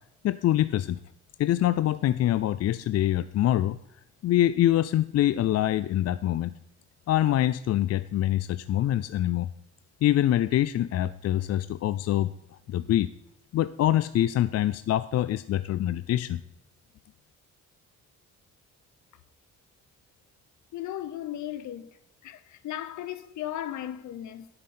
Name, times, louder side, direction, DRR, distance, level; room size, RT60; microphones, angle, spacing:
voice 1, 0.2-1.0 1.4-3.8 4.2-6.5 7.1-9.5 10.0-12.3 12.7-13.1 13.5-16.4, left 13 dB, 55° left, 0.4 m, -25 dB
voice 2, 20.7-21.9 22.2-24.5, left 12 dB, 70° left, 0.8 m, -36 dB
10.5 x 8.8 x 4.2 m
cardioid pair, 90°, 30 cm